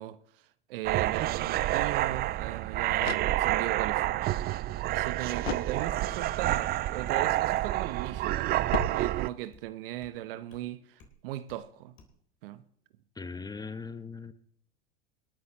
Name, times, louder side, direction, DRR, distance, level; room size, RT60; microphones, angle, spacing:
voice 1, 0.0-4.3 4.9-8.5 8.8-12.0 12.4-12.6, right 13 dB, 65° right, 0.9 m, -38 dB
sound 1, 0.8-9.3, right 15 dB, 35° right, 0.4 m, -28 dB
sound 2, 3.0-3.8 5.4-6.3 8.7-9.6, left 12 dB, 85° left, 0.4 m, -39 dB
sound 3, 7.1-7.2 7.6-7.7 8.1-8.3 8.5-8.7 9.0-9.2 9.5-9.7 10.0-10.1 10.5-10.6 11.0-11.2 11.5-11.6 12.0-12.2, left 2 dB, 45° left, 3.8 m, -56 dB
voice 2, 13.2-14.3, left 4 dB, 15° left, 0.8 m, -39 dB
26.5 x 9.4 x 3.0 m
hypercardioid pair, 80°, 30 cm